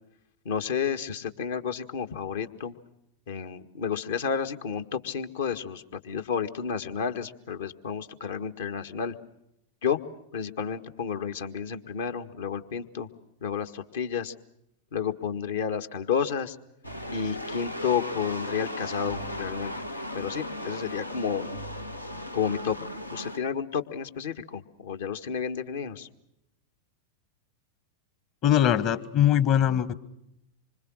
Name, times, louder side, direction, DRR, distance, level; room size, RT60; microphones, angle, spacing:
voice 1, 0.5-2.8 3.3-9.2 9.8-10.0 10.3-13.1 13.4-14.3 14.9-16.6 17.1-19.7 20.1-21.5 22.3-22.8 23.1-26.1, left 7 dB, 60° left, 8 dB, 1.7 m, -31 dB
sound 1, 16.8-23.4, left 1 dB, 90° left, 1.4 m, -36 dB
voice 2, 28.4-29.9, left 10 dB, 35° left, 14 dB, 1.5 m, -22 dB
26.5 x 25.5 x 6.4 m, 0.82 s
figure-of-eight pair, 90°, 0 cm